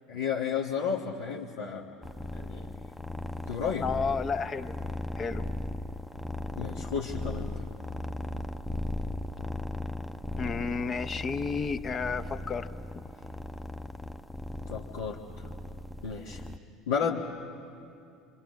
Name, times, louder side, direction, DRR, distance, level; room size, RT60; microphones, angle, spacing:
voice 1, 0.1-1.9 2.3-2.7 3.5-3.8 6.6-7.5 14.7-15.2 16.0-16.4 16.9-17.2, left 7 dB, 75° left, -4 dB, 1.4 m, -32 dB
sound 1, 2.0-16.6, left 1 dB, 5° left, 0.8 m, -37 dB
voice 2, 3.8-4.8 5.1-5.5 6.6-6.8 10.4-13.0, left 5 dB, 35° left, 10 dB, 0.9 m, -32 dB
26.5 x 25.5 x 6.5 m, 2.6 s
figure-of-eight pair, 65°, 0 cm